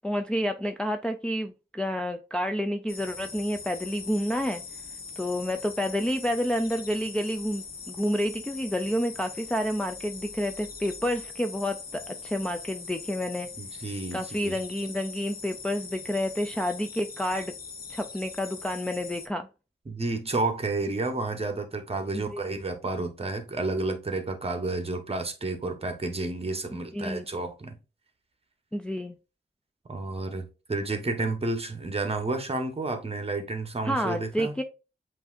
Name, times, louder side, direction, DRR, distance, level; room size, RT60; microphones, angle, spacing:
voice 1, 0.0-4.6 5.2-13.5 14.1-17.5 17.9-19.5 22.1-22.5 26.9-27.2 28.7-29.2 33.8-34.6, equal, 5° left, 0.3 m, -29 dB
sound 1, 2.9-19.3, left 5 dB, 55° left, 0.7 m, -42 dB
voice 2, 13.6-14.6 19.9-27.8 29.9-34.6, right 2 dB, 35° right, 1.0 m, -31 dB
7.8 x 2.6 x 2.4 m
wide cardioid pair, 110°, 18 cm